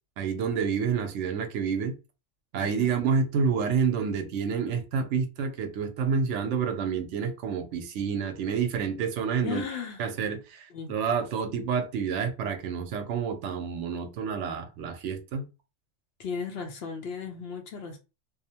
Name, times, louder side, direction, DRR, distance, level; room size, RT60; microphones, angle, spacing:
voice 1, 0.2-2.0 2.5-9.6 10.0-15.5, right 6 dB, 75° right, 0.9 m, -28 dB
voice 2, 2.6-2.9 9.4-10.0 10.7-10.9 16.2-18.0, left 6 dB, 65° left, 0.8 m, -35 dB
2.6 x 2.0 x 2.7 m
omnidirectional pair, 1.3 m